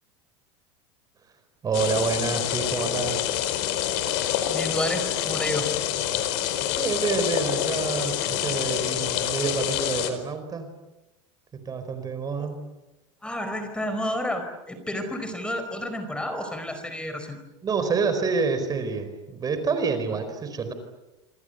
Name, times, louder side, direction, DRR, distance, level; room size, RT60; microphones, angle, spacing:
voice 1, 1.6-3.3 6.8-10.7 11.5-12.6 17.6-20.7, right 5 dB, 25° right, 9 dB, 4.6 m, -28 dB
sound 1, 1.7-10.1, left 11 dB, 65° left, 4.7 m, -27 dB
voice 2, 4.5-5.7 12.4-12.5 13.2-17.4, left 1 dB, 5° left, 8 dB, 4.7 m, -30 dB
27.0 x 27.0 x 8.1 m, 1.0 s
supercardioid pair, 130°, 15 cm